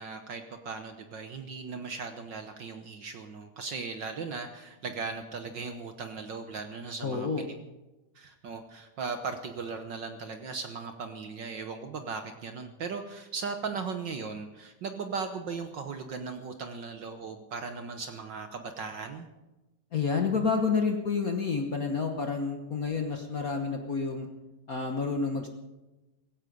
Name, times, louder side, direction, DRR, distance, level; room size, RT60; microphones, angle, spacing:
voice 1, 0.0-7.5 8.1-19.3, right 4 dB, 70° right, 7 dB, 1.0 m, -38 dB
voice 2, 7.0-7.5 19.9-24.3 24.7-25.5, left 5 dB, 90° left, 3 dB, 0.7 m, -29 dB
16.5 x 16.0 x 5.3 m, 1.1 s
omnidirectional pair, 3.4 m